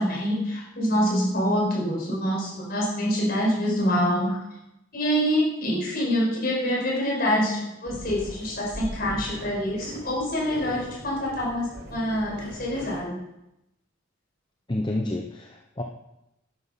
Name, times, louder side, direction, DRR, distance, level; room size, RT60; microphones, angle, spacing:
voice 1, 0.0-4.4 4.9-13.2, equal, 45° left, -3 dB, 5.2 m, -26 dB
sound 1, 7.9-13.0, equal, 65° right, 3.6 m, -40 dB
voice 2, 14.7-15.8, left 1 dB, 20° left, 2 dB, 0.7 m, -29 dB
11.0 x 9.8 x 5.8 m, 0.88 s
head